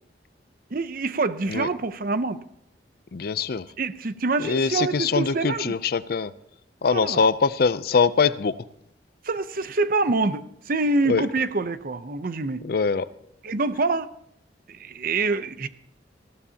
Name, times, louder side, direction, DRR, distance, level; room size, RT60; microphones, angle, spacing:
voice 1, 0.7-2.4 3.8-5.8 6.9-7.2 9.2-12.6 13.4-14.1 14.7-15.7, right 3 dB, 55° right, 0.7 m, -26 dB
voice 2, 3.1-3.7 4.4-6.3 6.8-8.6 11.1-11.3 12.6-13.1, left 5 dB, 60° left, 0.5 m, -23 dB
19.5 x 15.0 x 2.9 m
head